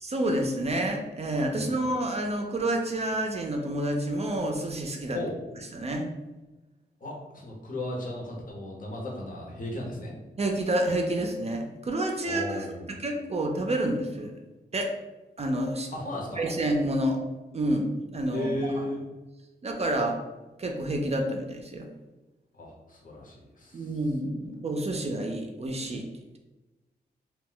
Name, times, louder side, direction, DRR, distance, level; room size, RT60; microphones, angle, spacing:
voice 1, 0.0-5.2 5.7-6.1 10.4-12.6 13.0-14.3 14.7-14.9 15.4-15.9 16.4-17.2 17.5-18.5 18.7-18.9 19.6-20.2 20.6-21.9 23.7-26.0, right 1 dB, 40° right, 2 dB, 0.4 m, -28 dB
voice 2, 7.0-10.1 12.2-12.8 15.9-16.4 18.3-19.0 22.5-23.9, left 1 dB, 50° left, -2 dB, 0.8 m, -35 dB
2.2 x 2.0 x 3.7 m, 1.1 s
cardioid pair, 65°, 17 cm